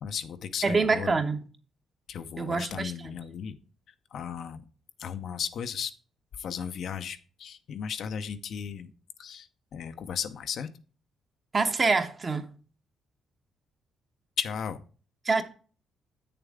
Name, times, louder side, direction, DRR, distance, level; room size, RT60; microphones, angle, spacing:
voice 1, 0.0-1.2 2.1-3.6 4.1-4.6 5.0-5.9 6.4-8.9 9.2-10.7 14.4-14.8, left 7 dB, 65° left, 0.7 m, -35 dB
voice 2, 0.6-1.4 2.4-2.9 11.5-12.5 15.2-15.4, right 4 dB, 35° right, 1.0 m, -25 dB
8.1 x 6.8 x 3.6 m
cardioid pair, 90°, 0 cm